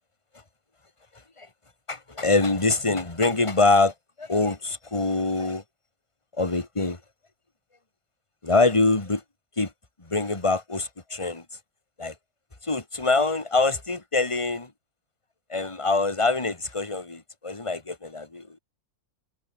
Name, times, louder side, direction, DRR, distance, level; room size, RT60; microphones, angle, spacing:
voice 1, 1.9-5.6 6.3-7.0 8.4-9.2 9.6-9.7 10.0-11.4 12.0-12.1 12.6-14.7 15.5-18.6, left 3 dB, 20° left, 2.5 m, -24 dB
omnidirectional pair, 1.6 m